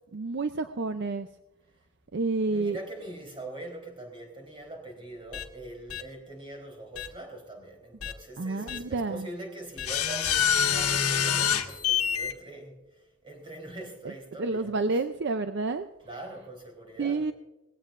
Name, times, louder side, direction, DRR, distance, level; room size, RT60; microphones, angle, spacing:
voice 1, 0.1-1.3 2.1-2.8 8.4-9.3 14.0-14.1 14.4-15.9 17.0-17.3, right 3 dB, 50° right, 0.5 m, -29 dB
voice 2, 2.5-15.0 16.0-17.3, right 1 dB, 25° right, 3.8 m, -43 dB
sound 1, 5.3-5.4 5.9-6.0 7.0-7.1 8.0-8.1 8.7-8.8 9.8-12.3, left 9 dB, 80° left, 1.3 m, -26 dB
19.5 x 16.5 x 2.5 m
head